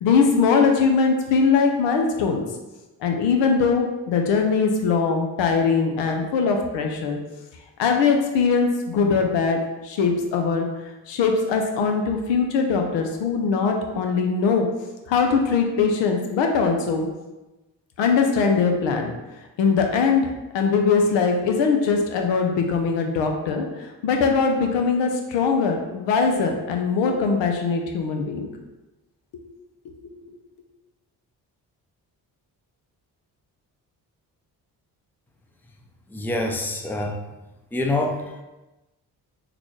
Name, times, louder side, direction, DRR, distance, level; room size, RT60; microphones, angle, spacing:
voice 1, 0.0-2.4 3.0-7.2 7.8-10.7 11.1-14.7 15.1-17.1 18.0-19.1 19.6-20.2 20.5-28.5, left 5 dB, 80° left, 3 dB, 0.6 m, -21 dB
voice 2, 36.1-37.2 37.7-38.4, left 2 dB, 5° left, 2 dB, 0.4 m, -26 dB
3.9 x 2.3 x 3.1 m, 1.1 s
supercardioid pair, 55°, 44 cm